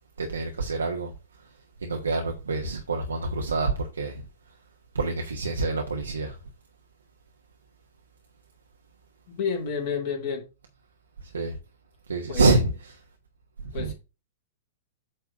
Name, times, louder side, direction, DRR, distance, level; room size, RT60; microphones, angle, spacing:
voice 1, 0.2-1.1 1.4-1.5 1.8-4.2 4.9-6.4 11.2-11.6 12.1-13.0 13.6-13.9, right 3 dB, 75° right, 1.0 m, -27 dB
voice 2, 9.3-10.4 12.3-12.4 13.7-13.9, left 6 dB, 50° left, 2.7 m, -29 dB
8.6 x 3.5 x 5.4 m
figure-of-eight pair, 100°, 0 cm